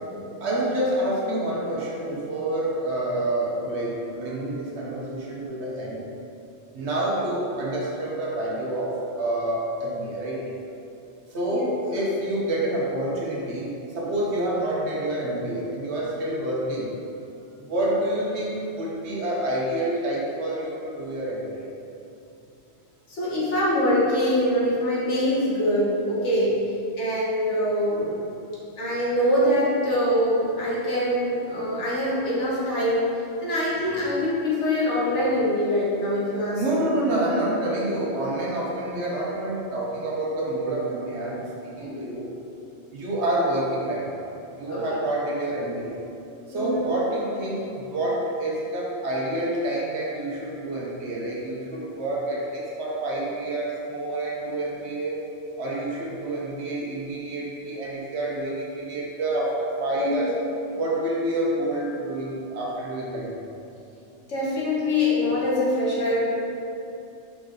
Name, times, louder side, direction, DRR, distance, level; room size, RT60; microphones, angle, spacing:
voice 1, 0.4-6.1 6.7-10.4 11.3-16.9 17.6-21.7 36.5-42.3 42.9-46.0 46.5-55.2 55.6-60.3 60.8-63.6, right 1 dB, 70° right, -4 dB, 1.4 m, -28 dB
voice 2, 23.1-26.6 27.0-28.2 28.8-33.1 33.4-36.9 41.7-42.0 44.7-45.0 46.5-46.8 59.9-60.3 60.7-60.8 64.3-66.2, left 1 dB, 80° left, -7 dB, 1.8 m, -24 dB
5.8 x 5.0 x 3.9 m, 2.7 s
omnidirectional pair, 1.2 m